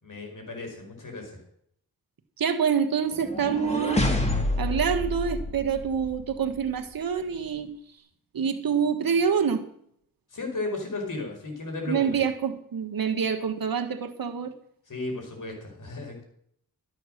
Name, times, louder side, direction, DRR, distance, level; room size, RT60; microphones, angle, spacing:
voice 1, 0.0-1.4 10.3-12.2 14.9-16.2, left 2 dB, 55° left, 2 dB, 5.3 m, -35 dB
voice 2, 2.4-4.1 4.6-7.7 8.3-9.6 11.9-14.5, right 7 dB, 65° right, 6 dB, 1.5 m, -26 dB
sound 1, 3.1-6.3, left 1 dB, 15° left, 2.5 m, -28 dB
13.0 x 9.2 x 6.5 m, 0.67 s
cardioid pair, 75°, 37 cm